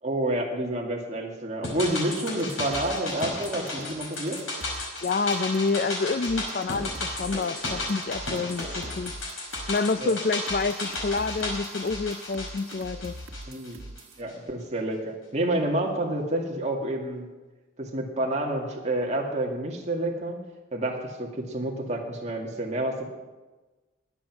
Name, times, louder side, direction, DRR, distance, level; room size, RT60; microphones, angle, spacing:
voice 1, 0.0-4.4 10.0-10.2 13.5-13.9 14.2-17.3 17.8-20.4 20.7-23.1, right 1 dB, 35° right, 0 dB, 2.1 m, -29 dB
sound 1, 1.6-14.0 14.3-14.4, left 2 dB, 85° left, 5.3 m, -34 dB
sound 2, 2.2-5.7 6.2-9.9 10.5-14.2, right 1 dB, 90° right, 1.4 m, -42 dB
voice 2, 5.0-9.1 9.7-13.1, left 4 dB, 45° left, 12 dB, 0.4 m, -28 dB
20.0 x 8.1 x 6.1 m, 1.2 s
head